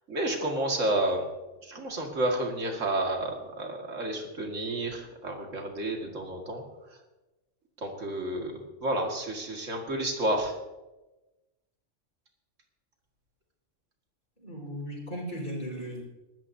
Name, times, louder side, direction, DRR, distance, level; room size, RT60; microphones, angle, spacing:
voice 1, 0.1-1.2 1.6-6.6 7.8-8.5 8.8-10.5, right 1 dB, 80° right, 2 dB, 2.3 m, -30 dB
voice 2, 14.4-16.0, equal, 45° left, -2 dB, 5.3 m, -36 dB
22.0 x 13.0 x 2.7 m, 1.1 s
omnidirectional pair, 1.3 m